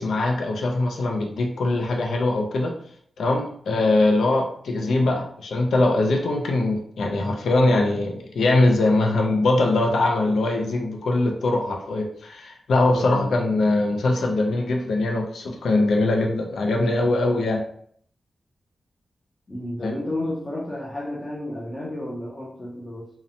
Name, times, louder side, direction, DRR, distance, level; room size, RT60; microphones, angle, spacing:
voice 1, 0.0-2.7 3.2-17.6 19.8-19.9, left 2 dB, 90° left, 2 dB, 0.4 m, -22 dB
voice 2, 12.8-13.3 19.5-23.1, left 1 dB, 20° left, -5 dB, 0.5 m, -31 dB
2.7 x 2.0 x 2.6 m, 0.63 s
wide cardioid pair, 155°, 0 cm